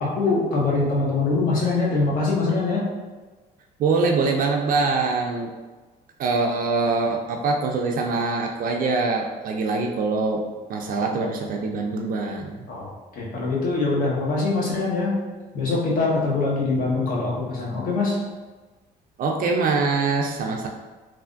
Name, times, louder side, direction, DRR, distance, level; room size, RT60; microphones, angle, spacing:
voice 1, 0.0-2.8 12.7-15.2 15.5-18.2, left 3 dB, 55° left, -4 dB, 1.0 m, -23 dB
voice 2, 3.8-5.5 6.2-10.4 10.7-12.7 19.2-20.7, right 3 dB, 55° right, 2 dB, 0.4 m, -23 dB
3.3 x 2.4 x 2.5 m, 1.3 s
cardioid pair, 110°, 17 cm